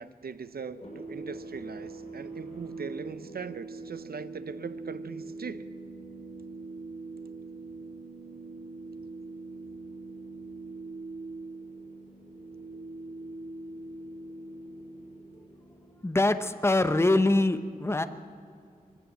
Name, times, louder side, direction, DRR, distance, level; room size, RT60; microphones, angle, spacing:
voice 1, 0.0-5.6, right 5 dB, 85° right, 13 dB, 0.7 m, -40 dB
sound 1, 0.6-16.9, right 3 dB, 45° left, 6.7 m, -43 dB
voice 2, 16.0-18.0, left 2 dB, 15° left, 10 dB, 0.8 m, -24 dB
21.5 x 15.5 x 8.0 m, 2.4 s
wide cardioid pair, 95°, 15 cm